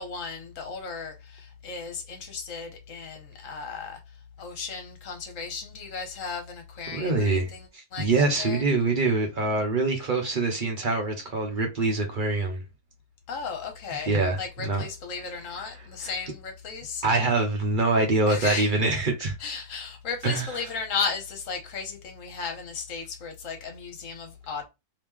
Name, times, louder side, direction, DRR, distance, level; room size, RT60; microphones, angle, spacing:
voice 1, 0.0-4.0 4.4-8.6 13.3-17.0 18.3-18.7 19.4-24.6, left 5 dB, 55° left, 1.2 m, -35 dB
voice 2, 6.9-7.5 8.0-12.6 14.1-14.8 17.0-19.3 20.2-20.5, right 3 dB, 50° right, 0.6 m, -24 dB
3.0 x 2.8 x 3.5 m
omnidirectional pair, 1.7 m